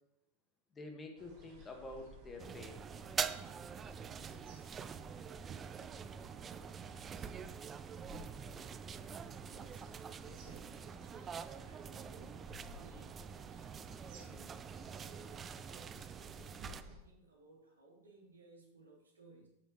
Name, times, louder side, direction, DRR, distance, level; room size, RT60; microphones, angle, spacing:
voice 1, 0.7-2.8, left 2 dB, 20° left, 4 dB, 1.8 m, -48 dB
sound 1, 1.2-17.0, equal, 45° right, 3.7 m, -57 dB
sound 2, 2.4-16.8, right 7 dB, 20° right, 0.5 m, -45 dB
voice 2, 9.5-9.9 10.2-11.1 11.4-13.5 14.0-14.5 14.8-19.5, right 3 dB, 75° right, -2 dB, 3.2 m, -61 dB
13.0 x 9.0 x 3.2 m, 0.89 s
figure-of-eight pair, 90°, 0 cm